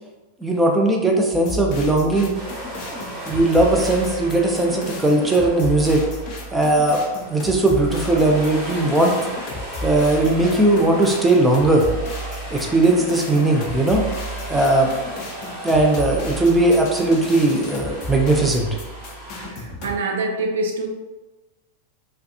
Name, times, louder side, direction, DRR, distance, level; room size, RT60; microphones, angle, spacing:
voice 1, 0.4-2.4 2.9-6.0 6.5-7.0 7.3-9.1 9.8-11.9 12.5-14.1 14.5-14.9 15.6-18.7, right 2 dB, 10° right, 0 dB, 0.5 m, -18 dB
sound 1, 1.3-19.9, equal, 40° left, 0.6 m, -33 dB
sound 2, 2.3-19.5, right 1 dB, 30° right, 1.1 m, -36 dB
voice 2, 19.4-20.9, right 2 dB, 60° right, 1 dB, 0.4 m, -25 dB
3.4 x 2.4 x 2.7 m, 1.1 s
figure-of-eight pair, 90°, 0 cm